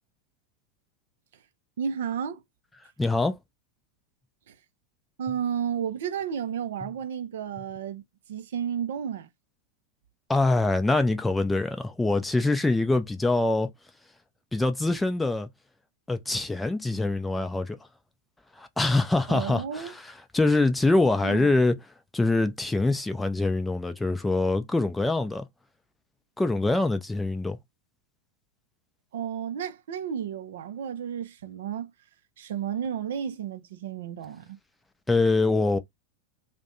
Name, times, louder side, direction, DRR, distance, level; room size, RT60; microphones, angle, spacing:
voice 1, 1.8-2.4 4.5-4.6 5.2-8.0 8.3-9.3 19.3-19.9 21.2-21.5 29.1-31.9 32.4-34.6, right 8 dB, 60° right, 0.4 m, -32 dB
voice 2, 3.0-3.4 10.3-13.7 14.5-15.5 16.1-17.8 18.6-21.8 22.1-25.5 26.4-27.6 35.1-35.8, left 2 dB, 10° left, 0.4 m, -24 dB
2.5 x 2.1 x 2.6 m
figure-of-eight pair, 90°, 0 cm